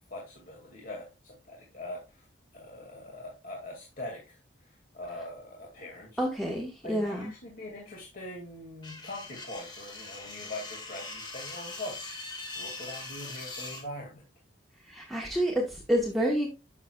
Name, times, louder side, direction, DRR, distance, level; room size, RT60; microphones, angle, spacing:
voice 1, 0.1-2.3 2.5-6.2 6.8-12.0 12.6-14.3, left 1 dB, 45° left, -2 dB, 2.2 m, -42 dB
voice 2, 6.2-7.3 14.8-16.5, equal, ahead, -2 dB, 1.2 m, -28 dB
sound 1, 8.8-13.8, left 3 dB, 25° left, 1.8 m, -41 dB
11.0 x 6.6 x 2.3 m, 0.26 s
head